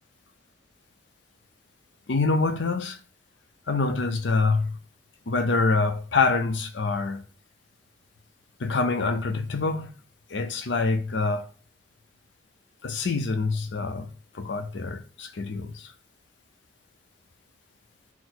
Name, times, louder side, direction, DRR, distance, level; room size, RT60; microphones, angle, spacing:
voice 1, 2.1-3.0 3.7-4.7 5.3-7.2 8.6-9.9 10.3-11.4 12.8-14.1 14.4-15.8, left 3 dB, 85° left, 0.6 m, -25 dB
4.3 x 2.0 x 4.2 m
head